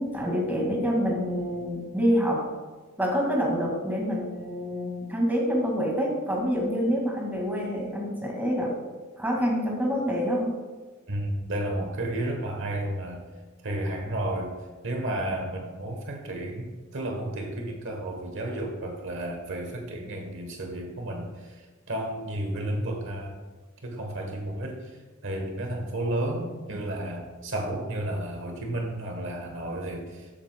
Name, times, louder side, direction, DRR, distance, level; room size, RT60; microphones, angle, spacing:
voice 1, 0.0-2.4 3.0-8.7 9.2-10.5, equal, 10° right, -1 dB, 1.9 m, -26 dB
voice 2, 11.1-13.2 13.6-14.6 14.8-23.4 23.8-25.0 25.2-30.3, right 1 dB, 65° right, 3 dB, 1.1 m, -32 dB
13.0 x 7.6 x 2.2 m, 1.3 s
head